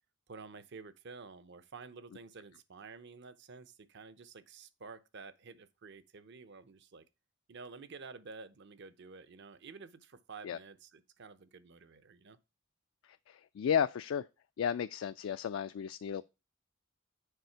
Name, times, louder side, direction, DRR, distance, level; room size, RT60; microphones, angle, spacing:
voice 1, 0.3-7.1 7.5-12.4, right 4 dB, 60° right, 0.7 m, -51 dB
voice 2, 13.3-14.3 14.6-16.2, left 8 dB, 70° left, 0.3 m, -33 dB
6.8 x 5.0 x 4.5 m
head